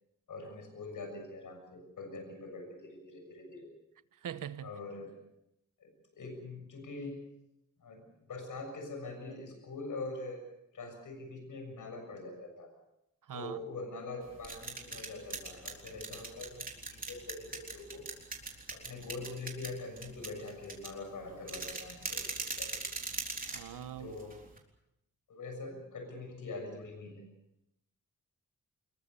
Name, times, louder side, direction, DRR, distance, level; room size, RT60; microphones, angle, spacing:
voice 1, 0.3-3.7 4.6-5.1 5.8-7.2 7.8-10.4 10.7-12.7 13.3-18.1 18.7-22.8 24.0-24.4 25.3-27.3, left 2 dB, 75° left, 7.0 m, -44 dB
voice 2, 4.2-4.7 13.2-13.6 23.5-24.1, right 9 dB, 85° right, 1.1 m, -42 dB
sound 1, 14.2-24.6, right 3 dB, 25° right, 3.7 m, -41 dB
25.5 x 22.0 x 6.8 m
wide cardioid pair, 165°, 31 cm